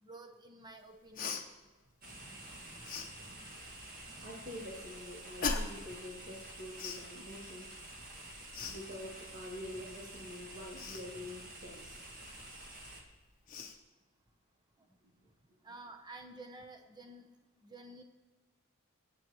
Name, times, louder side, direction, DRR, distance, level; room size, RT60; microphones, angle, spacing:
voice 1, 0.0-1.4 15.6-17.2 17.6-18.0, right 2 dB, 20° right, 4 dB, 0.8 m, -51 dB
Cough, 1.2-1.4 2.8-3.1 5.4-5.9 6.7-7.0 8.5-8.8 10.7-11.0 12.9-13.0 13.5-13.8, left 4 dB, 40° left, 1.0 m, -37 dB
sound 1, 2.0-13.0, right 1 dB, 40° right, 2.0 m, -49 dB
voice 2, 4.2-7.8 8.7-12.1 15.2-15.3, left 1 dB, 60° right, -8 dB, 3.0 m, -46 dB
25.0 x 8.6 x 3.1 m, 1.2 s
head